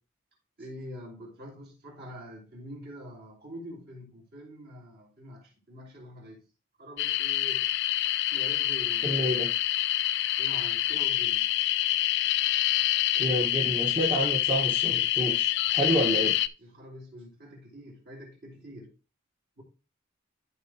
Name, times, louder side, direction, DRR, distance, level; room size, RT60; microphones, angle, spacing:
voice 1, 0.6-6.4 6.8-7.7 8.3-9.5 10.4-11.5 16.6-18.9 19.6-19.7, equal, 50° right, 3.5 m, -45 dB
sound 1, 7.0-16.5, left 14 dB, 55° left, 0.3 m, -26 dB
voice 2, 9.0-9.5 13.1-16.3, right 1 dB, 25° right, 1.4 m, -29 dB
13.0 x 4.8 x 2.9 m
head